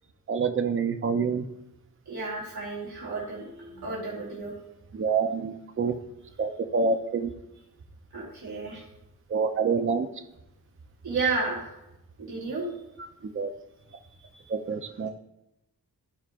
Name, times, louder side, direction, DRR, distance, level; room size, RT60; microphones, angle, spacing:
voice 1, 0.3-1.5 4.9-5.9 6.4-7.3 9.3-10.1 13.0-13.5 14.5-15.1, right 5 dB, 35° right, 6 dB, 0.7 m, -27 dB
voice 2, 2.1-4.5 8.1-8.8 11.0-11.7 12.2-12.7 14.3-14.4, right 3 dB, 80° right, -5 dB, 2.8 m, -32 dB
14.5 x 5.0 x 2.5 m, 0.89 s
wide cardioid pair, 115°, 37 cm